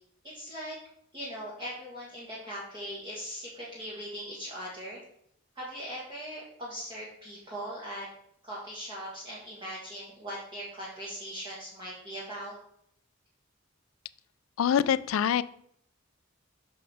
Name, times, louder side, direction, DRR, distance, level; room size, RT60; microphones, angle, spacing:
voice 1, 0.2-0.8 1.1-5.0 5.5-8.1 8.4-12.6, equal, 25° right, -5 dB, 1.5 m, -40 dB
voice 2, 14.6-15.4, left 8 dB, 85° left, 16 dB, 0.3 m, -24 dB
7.0 x 6.0 x 3.4 m, 0.71 s
head